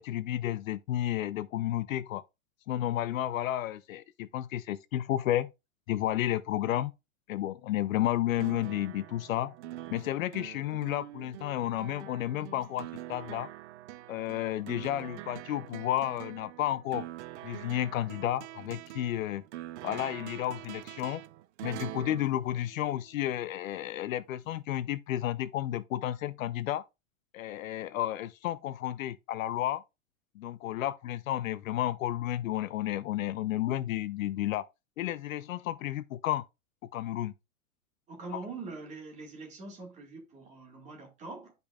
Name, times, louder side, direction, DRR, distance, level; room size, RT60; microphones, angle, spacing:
voice 1, 0.0-2.2 2.7-5.5 5.9-6.9 7.3-9.5 9.9-13.5 14.1-17.1 17.4-19.4 19.8-21.2 21.6-26.8 27.3-29.8 30.4-34.7 35.0-36.5 36.9-37.3, left 13 dB, 70° left, 0.6 m, -32 dB
sound 1, 8.4-23.3 24.5-24.6, right 14 dB, 55° right, 0.5 m, -45 dB
voice 2, 38.1-41.5, right 3 dB, 15° right, 1.7 m, -43 dB
12.0 x 5.3 x 2.3 m
supercardioid pair, 165°, 43 cm